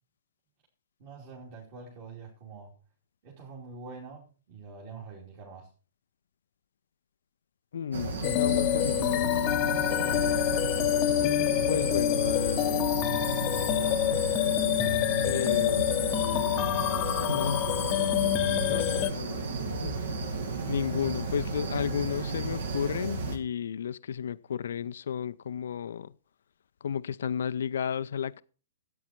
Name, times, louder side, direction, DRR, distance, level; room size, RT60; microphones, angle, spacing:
voice 1, 1.0-2.7 3.2-5.7 9.8-10.1, right 4 dB, 40° right, 2.8 m, -45 dB
voice 2, 7.7-9.3 11.7-12.9 15.2-16.0 17.3-17.7 18.7-20.1 20.7-26.1 26.8-28.4, left 8 dB, 60° left, 0.4 m, -33 dB
sound 1, 7.9-23.4, right 3 dB, 70° right, 2.0 m, -33 dB
sound 2, 8.2-19.1, left 13 dB, 30° left, 0.7 m, -27 dB
13.0 x 8.8 x 4.3 m
figure-of-eight pair, 115°, 0 cm